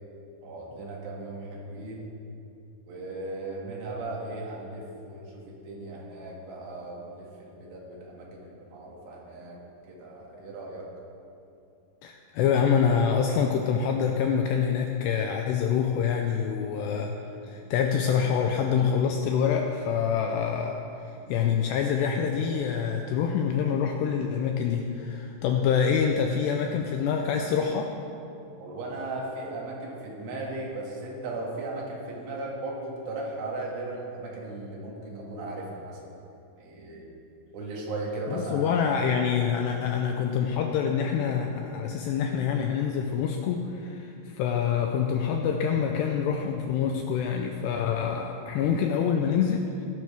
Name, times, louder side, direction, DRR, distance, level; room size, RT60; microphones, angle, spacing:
voice 1, 0.4-2.1 2.9-9.6 9.9-10.9 17.4-17.5 28.6-36.0 36.6-37.1 37.5-38.7, right 2 dB, 80° right, -3 dB, 4.4 m, -37 dB
voice 2, 12.0-17.1 17.5-20.8 21.3-27.9 38.3-49.9, left 7 dB, 85° left, 3 dB, 2.5 m, -26 dB
16.0 x 12.0 x 3.5 m, 2.7 s
omnidirectional pair, 5.5 m